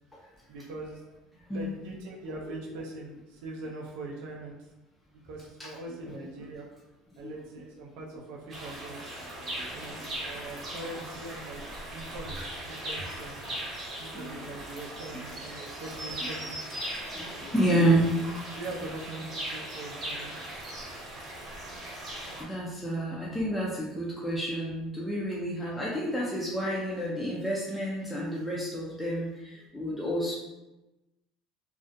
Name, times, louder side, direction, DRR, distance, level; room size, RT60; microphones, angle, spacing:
voice 1, 0.5-1.0 1.3-4.6 5.2-6.7 7.2-9.0 9.7-11.6 11.9-13.6 14.0-16.7 17.8-18.1 18.5-20.4, right 2 dB, 75° right, -1 dB, 0.4 m, -42 dB
sound 1, 8.5-22.4, right 1 dB, 25° right, 0.8 m, -39 dB
voice 2, 9.4-10.1 13.9-14.3 17.1-18.2 22.4-30.3, right 1 dB, 5° left, -5 dB, 0.3 m, -30 dB
2.3 x 2.1 x 2.5 m, 1.0 s
cardioid pair, 155°, 0 cm